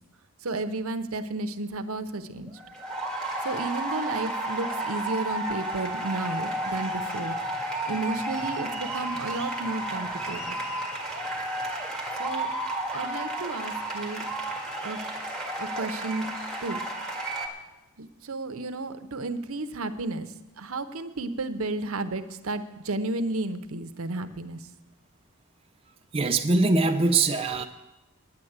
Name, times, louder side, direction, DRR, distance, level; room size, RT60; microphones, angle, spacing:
voice 1, 0.4-2.5 3.4-7.4 7.9-10.6 12.2-12.5 12.9-14.2 14.8-15.0 15.6-16.3 16.6-16.8 18.0-20.3 20.6-24.7, right 2 dB, 65° right, 0.8 m, -32 dB
sound 1, 2.5-17.5, right 1 dB, 5° left, 1.8 m, -32 dB
voice 2, 26.1-27.6, right 3 dB, 25° right, 0.5 m, -22 dB
10.0 x 8.8 x 8.0 m
head